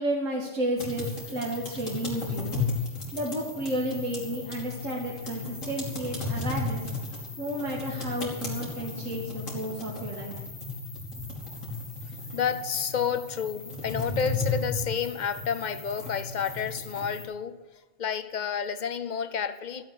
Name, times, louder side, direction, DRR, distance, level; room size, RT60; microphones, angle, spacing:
voice 1, 0.0-2.6 3.1-6.9 7.4-10.4, right 1 dB, 90° right, 2.1 m, -32 dB
sound 1, 0.8-17.2, left 3 dB, 80° left, 3.4 m, -35 dB
voice 2, 12.3-17.6 18.0-19.8, left 7 dB, 45° left, 0.7 m, -30 dB
13.5 x 8.0 x 8.3 m
omnidirectional pair, 1.3 m